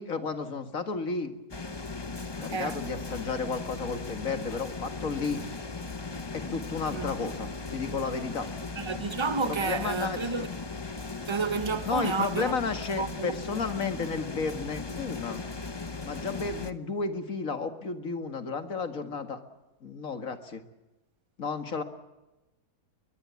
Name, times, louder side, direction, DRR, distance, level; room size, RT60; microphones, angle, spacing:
voice 1, 0.0-1.3 2.4-5.4 6.3-8.5 9.3-10.3 11.9-15.5 16.0-19.4 19.8-20.6 21.4-21.8, left 4 dB, 55° left, 2.3 m, -32 dB
sound 1, 1.5-16.7, left 3 dB, 20° left, 0.7 m, -38 dB
voice 2, 2.5-2.8 6.9-7.1 8.8-10.5 11.3-12.6 13.0-13.6, right 4 dB, 25° right, 0.6 m, -31 dB
22.0 x 21.5 x 8.3 m
omnidirectional pair, 1.7 m